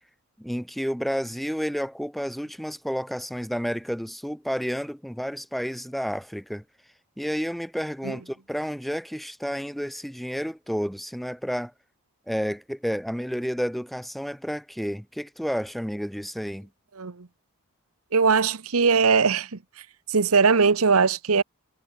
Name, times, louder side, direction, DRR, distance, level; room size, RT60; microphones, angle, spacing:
voice 1, 0.4-6.6 7.2-11.7 12.3-16.7, equal, ahead, 5.2 m, -30 dB
voice 2, 17.0-17.3 18.1-19.5 20.1-21.4, right 5 dB, 90° right, 1.0 m, -20 dB
head